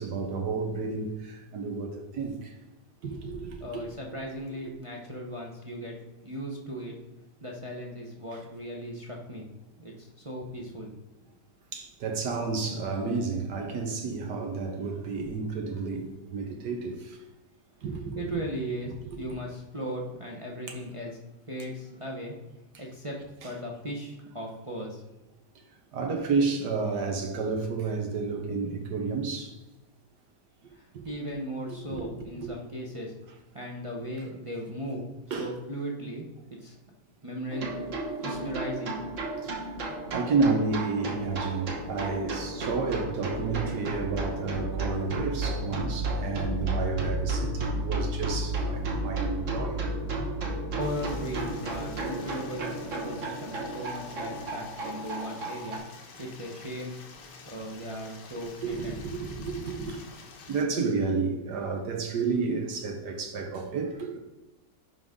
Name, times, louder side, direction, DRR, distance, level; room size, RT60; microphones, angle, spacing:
voice 1, 0.0-2.6 3.0-4.0 8.3-8.4 11.7-17.2 17.8-18.3 19.1-19.2 25.9-29.5 30.9-31.1 31.9-32.0 32.3-32.5 35.3-35.5 39.4-39.7 40.1-49.9 58.6-60.0 60.5-64.2, right 4 dB, 70° right, 1.5 m, -31 dB
voice 2, 3.6-6.0 6.2-7.0 7.4-9.5 9.8-10.9 18.1-21.2 21.5-22.3 22.8-25.0 30.7-33.1 33.5-35.1 35.4-36.8 37.2-37.8 38.2-39.0 50.8-55.8 56.2-57.0 57.5-59.0, equal, 30° right, 0.6 m, -37 dB
sound 1, 37.5-55.8, right 2 dB, 50° right, 1.3 m, -33 dB
Stream, 50.8-60.6, left 5 dB, 75° left, 1.5 m, -49 dB
11.0 x 3.9 x 3.6 m
omnidirectional pair, 1.9 m